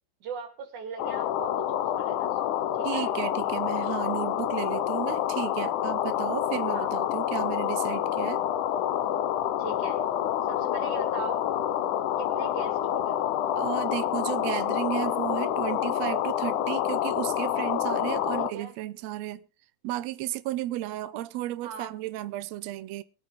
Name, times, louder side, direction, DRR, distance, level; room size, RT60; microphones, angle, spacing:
voice 1, 0.2-3.1 6.7-6.9 9.6-10.0 10.4-11.5 12.2-13.2 18.4-18.7 21.6-21.9, right 5 dB, 60° right, 4.2 m, -40 dB
sound 1, 1.0-18.5, left 11 dB, 70° left, 2.2 m, -28 dB
voice 2, 2.8-8.4 13.6-19.4 19.8-23.0, right 14 dB, 85° right, 1.5 m, -33 dB
22.5 x 8.7 x 3.7 m
omnidirectional pair, 4.0 m